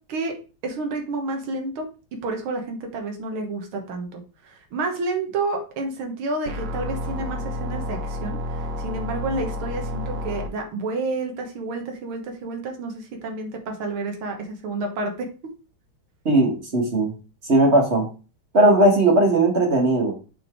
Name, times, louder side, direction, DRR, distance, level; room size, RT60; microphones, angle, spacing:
voice 1, 0.6-15.3, right 3 dB, 80° right, 3 dB, 2.2 m, -30 dB
sound 1, 6.5-10.5, left 1 dB, 60° right, 1.5 m, -30 dB
voice 2, 16.2-17.1 17.5-18.0 18.5-20.1, right 2 dB, 35° right, 2 dB, 1.6 m, -18 dB
6.2 x 4.6 x 4.4 m, 0.34 s
omnidirectional pair, 2.3 m